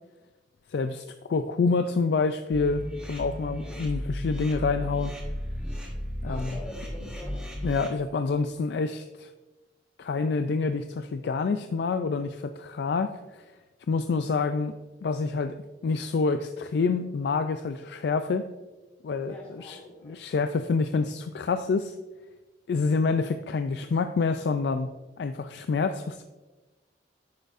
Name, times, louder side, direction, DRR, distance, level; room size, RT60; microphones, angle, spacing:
voice 1, 0.7-1.0 1.3-5.1 6.2-6.6 7.6-9.3 10.0-13.5 13.9-14.7 15.0-15.6 15.8-18.5 19.0-19.8 20.0-21.9 22.7-24.9 25.2-26.2, left 4 dB, 70° left, 9 dB, 0.3 m, -27 dB
sound 1, 2.5-7.9, equal, 5° right, 1.3 m, -34 dB
voice 2, 6.2-7.4 19.2-20.2, left 2 dB, 20° left, -6 dB, 1.3 m, -44 dB
9.5 x 6.5 x 2.5 m, 1.2 s
head